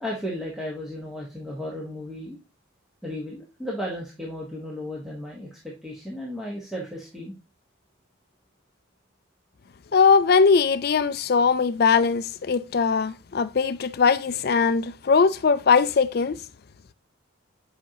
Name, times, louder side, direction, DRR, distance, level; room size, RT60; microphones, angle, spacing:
voice 1, 0.0-2.4 3.0-7.4, left 1 dB, ahead, 1.1 m, -34 dB
voice 2, 9.9-16.4, left 5 dB, 50° left, 0.4 m, -20 dB
8.3 x 5.1 x 2.8 m
head